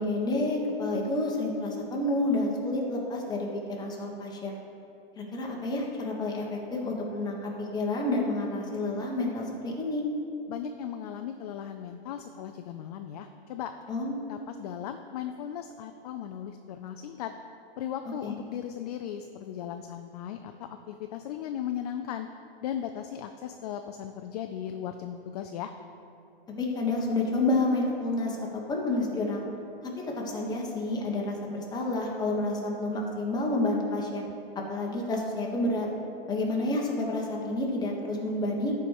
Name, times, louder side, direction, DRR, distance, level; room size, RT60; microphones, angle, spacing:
voice 1, 0.0-4.5 5.2-10.0 13.9-14.2 18.2-18.3 26.6-29.4 30.1-34.2 34.7-35.9 36.3-38.7, left 2 dB, 15° left, -2 dB, 1.3 m, -29 dB
voice 2, 10.5-13.7 14.3-17.3 17.8-20.5 20.9-22.3 22.6-25.7, left 10 dB, 40° left, 7 dB, 0.4 m, -37 dB
13.0 x 4.5 x 4.8 m, 2.7 s
hypercardioid pair, 130°, 31 cm